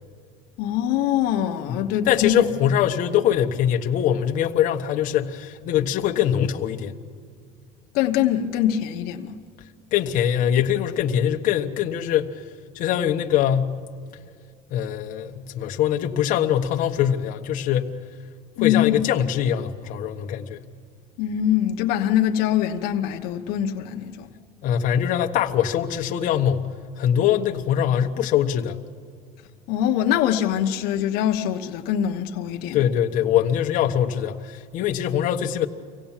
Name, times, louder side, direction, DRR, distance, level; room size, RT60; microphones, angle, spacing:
voice 1, 0.6-2.4 7.9-9.4 18.6-19.0 21.2-24.3 29.7-32.8, left 10 dB, 75° left, 1.1 m, -23 dB
voice 2, 1.7-6.9 9.9-12.3 12.7-13.7 14.7-17.9 18.6-20.6 24.6-26.7 27.0-28.8 32.7-35.7, left 10 dB, 55° left, 1.3 m, -23 dB
25.5 x 17.5 x 7.4 m
cardioid pair, 150°, 16 cm